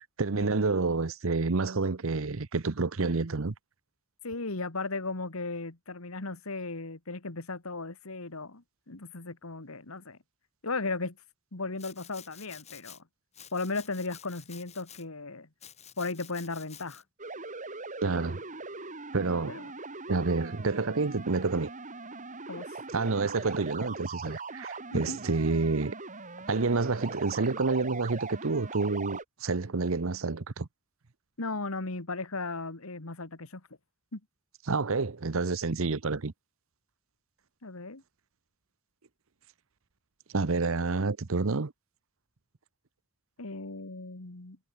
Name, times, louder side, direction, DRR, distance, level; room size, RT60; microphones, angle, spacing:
voice 1, 0.2-3.5 18.0-18.4 19.1-19.6 20.1-21.7 22.9-25.9 26.5-30.7 34.7-36.3 40.3-41.7, right 3 dB, 65° right, 0.9 m, -28 dB
voice 2, 4.2-10.2 10.6-11.2 11.5-13.0 13.5-15.5 16.0-17.0 19.5-19.7 22.5-22.8 24.9-25.2 31.4-33.6 34.1-34.2 37.6-38.0 43.4-44.6, left 3 dB, 75° left, 1.9 m, -36 dB
Domestic sounds home sounds, 11.8-13.0 13.3-15.0 15.6-17.0, left 9 dB, 30° left, 5.6 m, -50 dB
sound 1, 17.2-29.2, right 3 dB, 35° right, 3.5 m, -41 dB
head